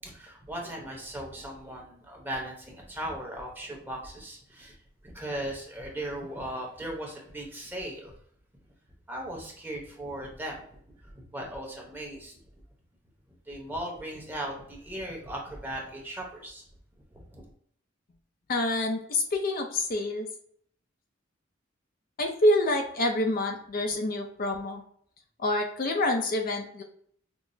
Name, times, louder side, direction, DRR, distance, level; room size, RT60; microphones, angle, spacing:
voice 1, 0.0-4.8 5.0-8.1 9.1-10.6 11.0-12.4 13.5-16.6 17.1-17.4, right 1 dB, 10° right, -1 dB, 0.9 m, -38 dB
voice 2, 18.5-20.3 22.2-24.8 25.4-26.8, left 1 dB, 45° left, 3 dB, 0.5 m, -27 dB
5.9 x 2.0 x 2.6 m, 0.62 s
head